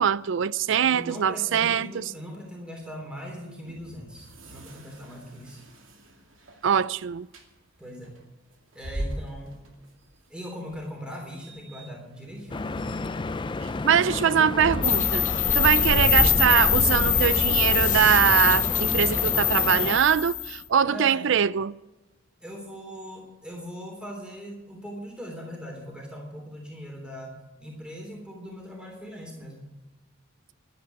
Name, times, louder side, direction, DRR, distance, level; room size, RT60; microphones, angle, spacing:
voice 1, 0.0-2.0 6.6-7.3 13.8-15.2 15.5-21.7, right 8 dB, 65° right, 0.4 m, -22 dB
voice 2, 0.8-5.6 7.8-8.2 8.7-9.6 10.3-13.0 20.9-21.3 22.4-27.3 27.6-29.7, equal, 5° right, 3.4 m, -40 dB
sound 1, 2.6-20.9, equal, 85° right, 2.4 m, -44 dB
Stream / Boat Water vehicle, 12.5-20.0, left 3 dB, 25° left, 0.4 m, -32 dB
sound 2, 14.8-20.6, left 9 dB, 40° left, 0.9 m, -23 dB
12.0 x 9.2 x 8.2 m
head